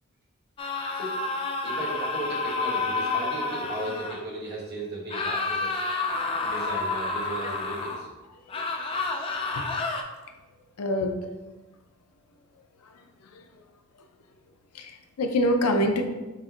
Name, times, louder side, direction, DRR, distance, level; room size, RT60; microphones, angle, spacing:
sound 1, 0.6-4.2 5.1-8.0 8.5-10.0, left 3 dB, 25° left, 0.3 m, -29 dB
voice 1, 1.6-5.8 6.4-8.1, right 1 dB, 45° right, -4 dB, 1.2 m, -35 dB
voice 2, 10.8-11.2 12.8-12.9 13.3-13.5 14.7-16.1, left 1 dB, 85° left, 5 dB, 0.5 m, -25 dB
6.3 x 2.1 x 3.7 m, 1.2 s
head